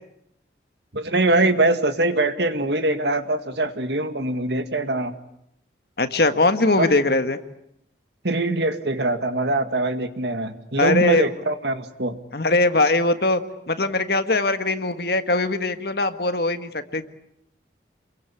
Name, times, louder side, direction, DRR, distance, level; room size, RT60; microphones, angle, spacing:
voice 1, 0.9-5.1 6.8-6.9 8.2-12.2, right 2 dB, 65° right, 9 dB, 2.0 m, -23 dB
voice 2, 6.0-7.4 10.8-11.3 12.3-13.4 13.7-17.2, left 2 dB, 55° left, 9 dB, 1.6 m, -21 dB
28.0 x 22.5 x 8.5 m, 0.77 s
head